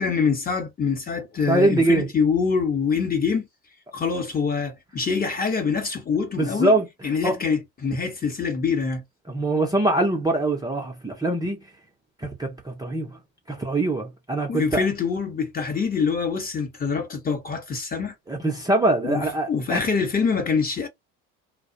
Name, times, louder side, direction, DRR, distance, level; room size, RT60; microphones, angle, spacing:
voice 1, 0.0-3.5 3.9-6.7 7.0-9.0 14.5-18.1 19.0-19.2 19.5-20.9, left 5 dB, 25° left, 0.8 m, -25 dB
voice 2, 1.5-2.1 6.4-6.8 7.2-7.4 9.3-11.7 12.2-13.2 13.5-14.8 18.3-19.9, right 2 dB, 10° right, 0.5 m, -23 dB
2.3 x 2.1 x 2.5 m
supercardioid pair, 90°, 37 cm